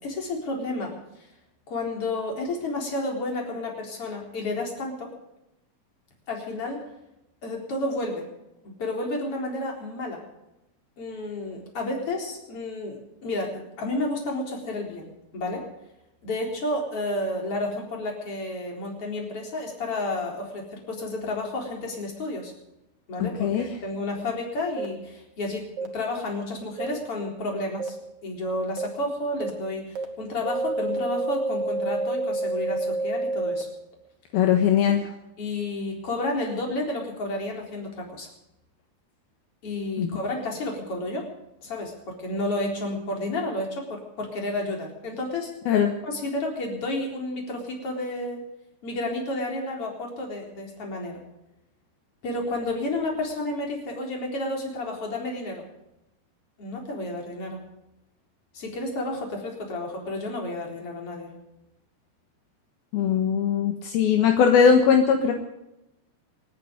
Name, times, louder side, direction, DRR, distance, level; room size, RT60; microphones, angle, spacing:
voice 1, 0.0-1.3 1.7-5.1 6.3-6.9 7.4-8.3 8.6-10.2 11.0-15.7 16.2-22.5 23.1-28.0 28.2-33.7 35.4-38.3 39.6-41.3 41.6-45.5 46.0-48.4 48.8-51.2 52.2-55.7 56.6-57.6 58.5-61.3, left 2 dB, 35° left, 1 dB, 4.7 m, -31 dB
voice 2, 23.2-23.6 34.3-35.0 40.0-40.1 45.7-45.9 62.9-65.3, left 7 dB, 75° left, 4 dB, 3.2 m, -20 dB
sound 1, 24.8-24.9 25.8-25.9 26.8-26.9 27.8-27.9 28.8-28.9 29.4-29.5 30.0-30.1 30.5-33.6, right 2 dB, 55° right, 2.9 m, -28 dB
28.0 x 9.7 x 5.1 m, 0.90 s
omnidirectional pair, 4.6 m